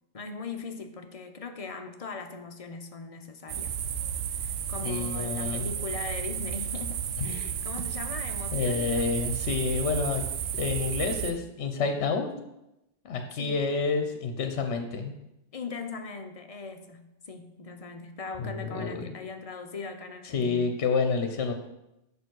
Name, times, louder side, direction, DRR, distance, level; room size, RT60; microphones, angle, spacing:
voice 1, 0.1-3.8 4.3-9.2 13.3-13.6 15.5-20.8, left 4 dB, 35° left, 6 dB, 0.6 m, -40 dB
sound 1, 3.5-11.3, right 8 dB, 80° right, 1.0 m, -32 dB
voice 2, 4.8-5.7 7.3-7.4 8.5-10.2 10.5-12.3 13.0-15.1 18.4-19.1 20.3-21.5, left 4 dB, 65° left, 6 dB, 1.0 m, -29 dB
6.9 x 5.1 x 6.3 m, 0.91 s
omnidirectional pair, 1.3 m